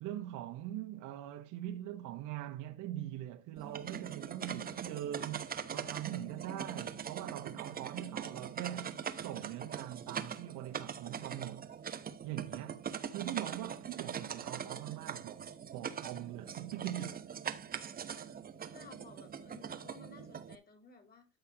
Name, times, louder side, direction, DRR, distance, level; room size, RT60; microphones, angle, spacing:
voice 1, 0.0-5.4 5.7-11.7 12.2-12.8 13.1-17.1, right 13 dB, 50° right, 1.2 m, -42 dB
sound 1, 3.6-20.6, right 7 dB, 20° right, 0.9 m, -42 dB
voice 2, 18.7-21.3, left 4 dB, 25° left, 3.3 m, -56 dB
13.0 x 5.6 x 2.9 m
hypercardioid pair, 100°, 40 cm